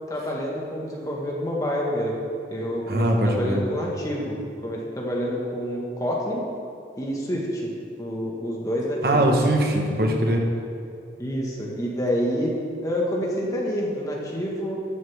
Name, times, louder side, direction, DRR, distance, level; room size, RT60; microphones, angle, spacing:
voice 1, 0.1-2.1 2.5-6.4 7.0-7.7 8.0-9.2 11.2-12.5 12.8-14.8, equal, 20° left, -3 dB, 1.6 m, -28 dB
voice 2, 2.9-3.6 9.0-10.4, right 1 dB, 55° right, 1 dB, 1.3 m, -21 dB
13.5 x 7.6 x 3.6 m, 2.5 s
head